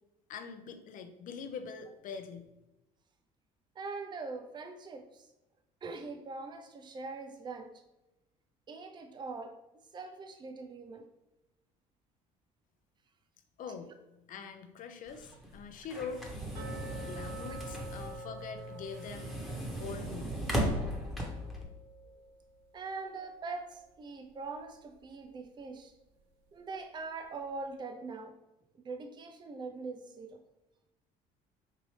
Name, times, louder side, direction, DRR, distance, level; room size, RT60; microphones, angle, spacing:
voice 1, 0.3-2.5 13.6-13.9 14.3-16.3 17.1-19.3 19.7-20.3, left 5 dB, 55° left, 7 dB, 0.6 m, -43 dB
voice 2, 3.8-5.3 5.8-7.7 8.7-9.5 9.9-11.1 22.0-22.1 22.7-25.9 26.5-28.3 28.7-30.4, right 3 dB, 25° right, 5 dB, 0.5 m, -42 dB
sound 1, 15.1-21.6, right 1 dB, ahead, 1.0 m, -37 dB
sound 2, 16.5-23.4 23.7-23.8 24.3-24.4 24.9-25.0, equal, 75° right, 0.6 m, -49 dB
4.6 x 2.6 x 3.2 m, 0.98 s
supercardioid pair, 90°, 17 cm